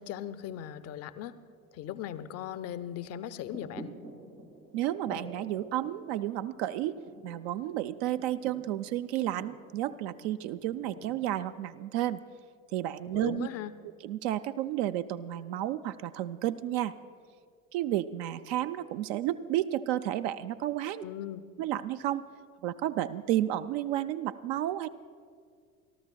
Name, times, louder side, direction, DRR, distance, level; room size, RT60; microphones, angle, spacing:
voice 1, 0.0-1.3 1.7-3.9 13.1-13.7 21.0-21.5, left 11 dB, 35° left, 13 dB, 0.6 m, -38 dB
sound 1, 3.4-11.6, right 2 dB, 80° right, 1.7 m, -49 dB
voice 2, 4.7-7.0 7.2-12.2 12.7-13.5 14.0-16.9 17.7-21.0 21.6-22.2 22.6-24.9, right 13 dB, 50° right, 11 dB, 0.5 m, -31 dB
30.0 x 13.5 x 2.3 m, 2.1 s
figure-of-eight pair, 65°, 42 cm